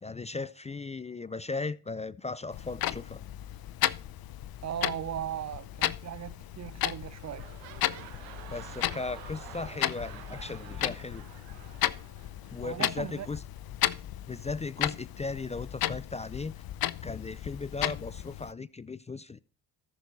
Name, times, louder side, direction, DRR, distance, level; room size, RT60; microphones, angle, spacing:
voice 1, 0.0-3.2 8.5-11.2 12.5-13.4 14.3-16.5 17.0-19.4, left 3 dB, 15° left, 0.4 m, -37 dB
Clock, 2.5-18.5, left 13 dB, 50° left, 0.7 m, -35 dB
voice 2, 4.6-7.5 12.6-13.3, right 10 dB, 40° right, 0.4 m, -37 dB
sound 1, 6.5-6.8 7.1-12.9 13.6-13.7, right 13 dB, 85° right, 1.2 m, -49 dB
14.0 x 6.2 x 4.1 m
supercardioid pair, 60°, 45 cm